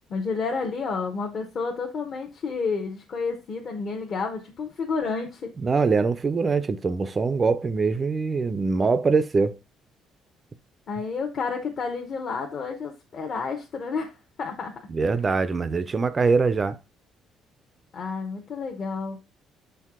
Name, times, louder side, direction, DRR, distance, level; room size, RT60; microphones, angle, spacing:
voice 1, 0.1-5.5 10.9-14.8 17.9-19.2, left 4 dB, 40° left, 0.9 m, -30 dB
voice 2, 5.6-9.6 14.9-16.8, right 4 dB, 25° right, 0.4 m, -23 dB
6.7 x 4.5 x 3.6 m
cardioid pair, 155°, 0 cm